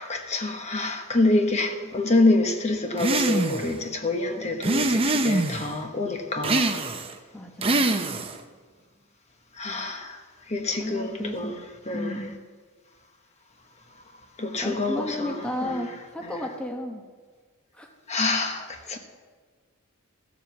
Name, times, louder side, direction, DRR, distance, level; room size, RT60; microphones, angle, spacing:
voice 1, 0.0-6.8 9.5-10.2 10.5-11.6 11.9-12.3 14.4-15.9 16.2-16.4 18.1-19.0, left 2 dB, 30° left, 1.1 m, -26 dB
sound 1, 3.0-3.7 4.6-5.7 6.4-7.1 7.6-8.4, right 2 dB, 25° right, 0.6 m, -24 dB
voice 2, 7.3-8.3 10.8-11.5 11.9-12.4 14.6-17.0 17.7-17.9, left 1 dB, 5° left, 0.9 m, -33 dB
14.5 x 7.5 x 7.0 m
head